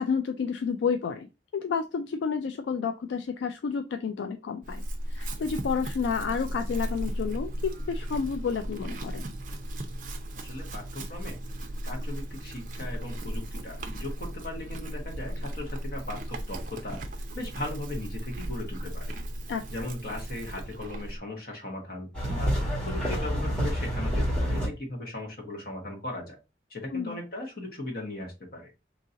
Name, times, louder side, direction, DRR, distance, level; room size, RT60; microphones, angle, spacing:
voice 1, 0.0-4.8 5.1-9.3 19.5-19.9 26.9-27.2, left 6 dB, 75° left, 7 dB, 0.3 m, -30 dB
Chewing mastication / Livestock farm animals working animals, 4.6-21.2, right 1 dB, 45° right, 0.5 m, -36 dB
voice 2, 10.3-11.4 11.8-17.0 17.3-19.1 19.7-22.5 22.8-26.4 26.7-28.7, left 1 dB, 55° left, 0 dB, 1.2 m, -38 dB
sound 1, 22.1-24.7, equal, 5° left, 1.4 m, -27 dB
2.8 x 2.8 x 3.7 m, 0.27 s
head